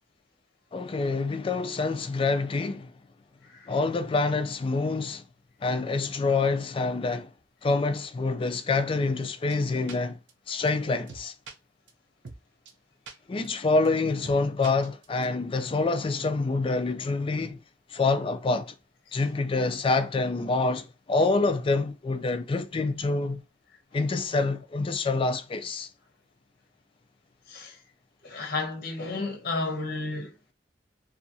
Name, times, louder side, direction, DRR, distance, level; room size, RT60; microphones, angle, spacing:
voice 1, 0.7-2.9 3.7-5.2 5.6-7.3 7.6-10.2 10.5-11.3 13.3-17.6 17.9-18.7 19.1-23.4 23.9-25.9, left 3 dB, 30° left, 0.3 m, -26 dB
sound 1, 9.5-9.6 9.9-10.0 10.3-10.4 10.7-10.8 11.1-11.5 11.9-12.0 12.2-12.4 12.7-12.8 13.1-13.2 13.4-13.5 13.8-13.9 14.2-14.4 14.6-15.2, right 4 dB, 75° right, 0.6 m, -43 dB
voice 2, 27.5-27.8 28.2-30.3, left 3 dB, 55° left, 0.8 m, -32 dB
2.7 x 2.4 x 2.6 m
head